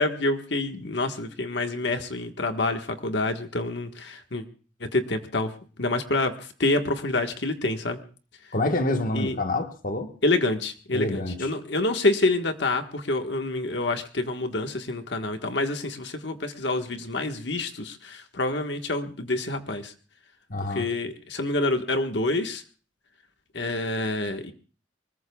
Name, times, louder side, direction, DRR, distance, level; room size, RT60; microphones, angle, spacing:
voice 1, 0.0-4.4 4.8-5.5 5.8-6.3 6.6-8.0 9.1-9.4 10.2-19.9 20.7-22.6 23.5-24.5, left 2 dB, 65° left, 6 dB, 1.5 m, -27 dB
voice 2, 8.5-10.1 10.9-11.5 20.5-20.9, left 2 dB, 45° left, 6 dB, 1.4 m, -27 dB
24.0 x 21.5 x 2.3 m, 0.39 s
head